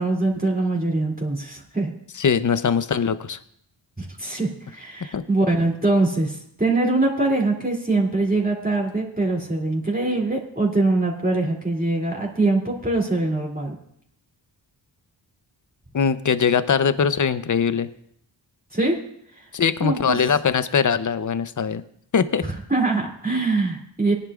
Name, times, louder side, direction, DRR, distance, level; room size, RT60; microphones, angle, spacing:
voice 1, 0.0-1.9 4.0-13.7 18.7-19.0 19.4-19.5 19.8-20.2 22.4-24.1, right 2 dB, 20° right, -1 dB, 2.8 m, -23 dB
voice 2, 2.2-3.4 5.1-5.2 15.9-17.9 19.5-21.8 22.1-22.4, left 6 dB, 40° left, 13 dB, 0.7 m, -21 dB
18.5 x 11.0 x 2.4 m, 0.70 s
cardioid pair, 45°, 47 cm